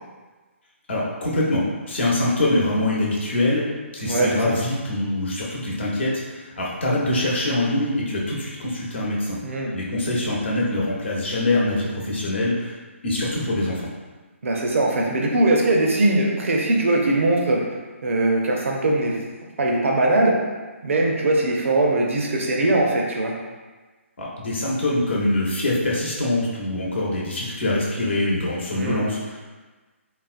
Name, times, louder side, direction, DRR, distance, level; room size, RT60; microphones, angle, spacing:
voice 1, 0.9-3.6 3.9-9.4 9.7-12.7 13.0-13.9 24.2-29.4, left 1 dB, 55° left, -4 dB, 0.9 m, -24 dB
voice 2, 4.0-4.6 9.4-9.8 14.4-17.6 18.0-19.2 19.6-20.4 20.8-23.3 28.7-29.1, right 2 dB, 70° right, -1 dB, 0.5 m, -21 dB
3.9 x 2.1 x 2.5 m, 1.3 s
figure-of-eight pair, 145°, 7 cm